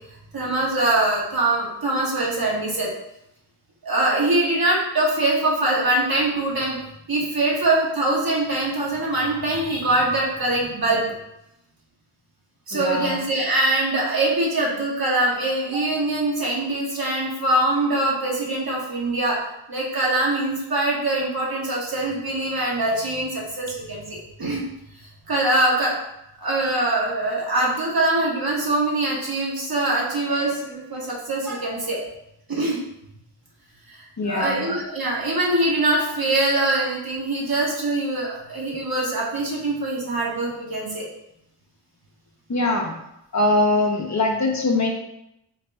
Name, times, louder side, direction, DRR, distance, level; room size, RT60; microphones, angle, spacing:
voice 1, 0.3-2.9 3.8-6.8 7.1-11.0 12.7-19.4 19.7-24.6 25.3-25.9 26.4-32.0 32.5-32.8 33.9-41.1, right 2 dB, 50° right, -4 dB, 1.5 m, -23 dB
voice 2, 12.7-13.2 34.2-34.7 42.5-43.0 43.3-44.9, left 2 dB, 40° left, 1 dB, 0.7 m, -22 dB
4.0 x 2.5 x 3.4 m, 0.83 s
cardioid pair, 50°, 45 cm